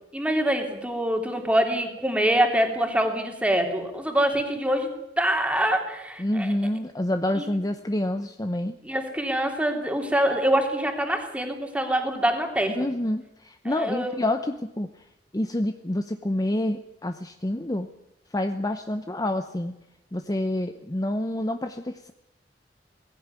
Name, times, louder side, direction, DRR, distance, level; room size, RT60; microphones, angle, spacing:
voice 1, 0.1-4.9 5.2-6.5 7.4-7.5 8.8-12.8 13.6-14.2, right 1 dB, 5° right, 3 dB, 3.2 m, -25 dB
voice 2, 6.2-8.8 12.7-14.9 15.3-17.9 18.3-19.7 20.1-22.1, left 1 dB, 20° left, 8 dB, 0.8 m, -28 dB
18.5 x 16.5 x 9.6 m, 0.89 s
head